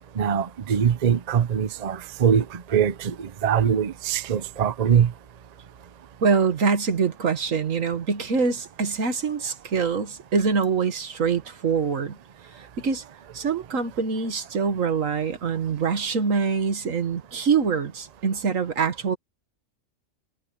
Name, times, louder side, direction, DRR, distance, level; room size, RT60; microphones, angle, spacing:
voice 1, 0.2-5.1, right 8 dB, 40° right, 0.6 m, -22 dB
voice 2, 6.2-12.2 12.6-13.0 13.3-19.2, right 5 dB, 85° right, 1.9 m, -24 dB
omnidirectional pair, 1.3 m